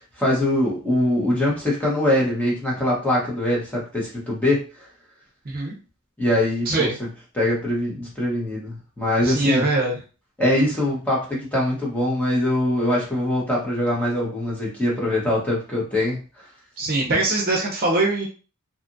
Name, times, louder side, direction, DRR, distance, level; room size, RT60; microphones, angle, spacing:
voice 1, 0.2-4.7 6.2-6.9 7.3-9.7 10.4-16.2 17.1-17.2, left 1 dB, 5° left, -5 dB, 0.9 m, -22 dB
voice 2, 5.4-5.8 6.7-6.9 9.2-10.0 16.8-18.3, right 2 dB, 45° right, -1 dB, 0.7 m, -22 dB
2.8 x 2.4 x 2.5 m, 0.35 s
head